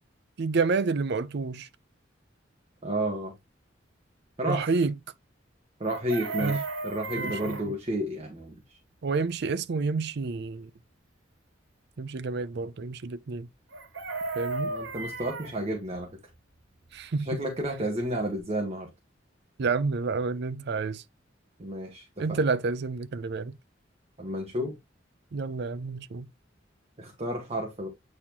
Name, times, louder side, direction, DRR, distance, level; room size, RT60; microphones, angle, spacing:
voice 1, 0.4-1.7 4.5-5.0 6.4-6.6 7.2-7.8 9.0-10.7 12.0-13.5 14.4-14.7 16.9-17.3 19.6-21.0 22.2-23.5 25.3-26.3, right 4 dB, 60° right, 0.5 m, -29 dB
voice 2, 2.8-3.3 4.4-4.7 5.8-8.6 14.7-16.1 17.2-18.9 21.6-22.4 24.2-24.7 27.0-27.9, right 1 dB, 35° right, 1.4 m, -31 dB
Chicken rooster, 5.8-7.7 13.7-15.5 17.8-17.9 18.1-18.4, right 3 dB, 85° right, 2.1 m, -34 dB
8.6 x 4.2 x 2.9 m
head